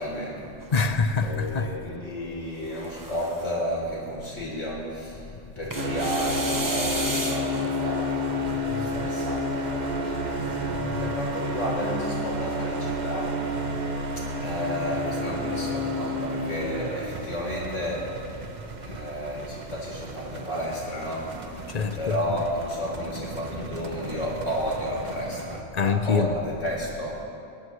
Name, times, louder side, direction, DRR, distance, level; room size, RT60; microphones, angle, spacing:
voice 1, 0.0-0.6 1.2-10.6 11.0-13.4 14.2-18.2 18.8-21.3 21.9-27.2, equal, 75° left, -4 dB, 3.9 m, -32 dB
sound 1, 0.6-1.5 2.5-3.6 5.7-7.7, right 1 dB, 15° right, 1.0 m, -33 dB
voice 2, 0.7-1.7 8.8-9.0 10.4-11.1 21.7-22.1 23.6-23.7 25.7-26.3, left 5 dB, 40° left, 8 dB, 0.8 m, -26 dB
sound 2, 5.7-25.6, equal, 40° right, 1.0 m, -31 dB
21.0 x 19.0 x 3.2 m, 2.5 s
omnidirectional pair, 1.3 m